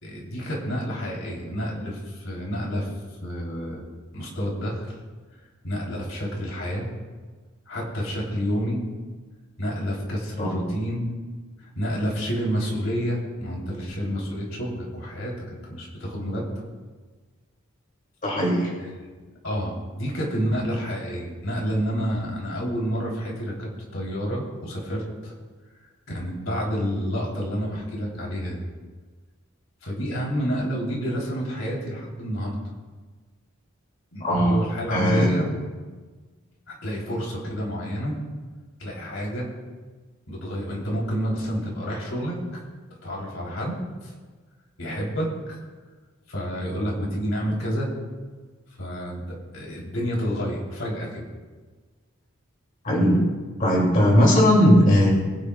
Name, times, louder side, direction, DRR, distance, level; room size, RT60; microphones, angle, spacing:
voice 1, 0.0-2.9 3.2-3.8 4.1-5.0 5.6-6.9 7.7-8.8 9.6-11.1 11.6-16.5 18.8-18.9 19.4-25.3 26.1-28.7 29.8-32.5 34.1-35.5 36.7-38.2 38.8-39.5 40.3-42.4 43.0-44.1 44.8-45.6 46.3-47.9 48.8-51.3, equal, 75° left, -3 dB, 3.5 m, -29 dB
voice 2, 18.2-18.7 34.2-34.6 34.9-35.3 52.8-53.2 53.6-55.1, equal, 40° left, -3 dB, 2.6 m, -18 dB
22.5 x 10.0 x 2.4 m, 1.4 s
head